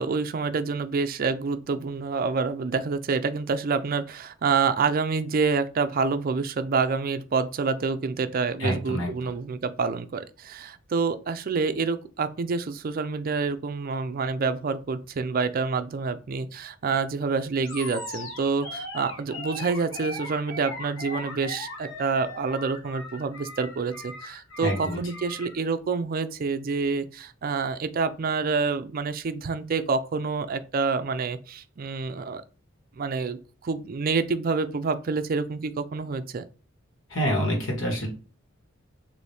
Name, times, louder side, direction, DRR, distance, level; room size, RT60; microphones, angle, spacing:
voice 1, 0.0-32.4 33.0-36.4, right 4 dB, 45° right, 0.4 m, -27 dB
voice 2, 8.6-9.1 24.6-25.0 37.1-38.1, equal, 70° left, 1.5 m, -26 dB
Animal, 17.6-25.6, left 2 dB, 85° left, 1.4 m, -39 dB
4.1 x 2.7 x 3.3 m
head